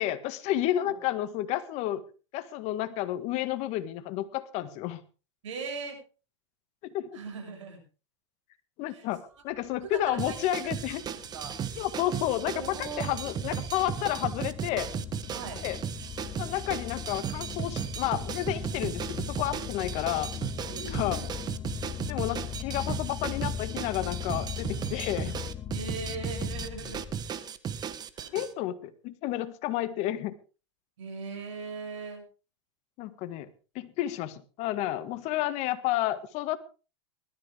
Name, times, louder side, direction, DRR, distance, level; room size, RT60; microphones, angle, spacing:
voice 1, 0.0-2.0 2.3-5.0 6.8-7.2 8.8-11.0 11.7-14.9 15.6-15.8 16.4-20.3 20.9-21.2 22.1-25.4 28.3-30.3 33.0-33.5 33.8-36.6, left 13 dB, 45° left, 11 dB, 1.8 m, -31 dB
voice 2, 5.4-6.0 7.1-7.8 8.9-9.0 9.8-10.4 11.1-11.6 12.5-13.2 15.3-15.6 20.7-21.3 25.7-27.0 28.1-28.4 31.0-32.2, right 4 dB, 75° right, 3 dB, 7.5 m, -39 dB
sound 1, 9.7-27.3, left 10 dB, 25° left, 0.8 m, -39 dB
sound 2, 10.2-28.5, right 8 dB, 25° right, 1.3 m, -36 dB
20.0 x 13.5 x 3.5 m, 0.34 s
hypercardioid pair, 120°, 16 cm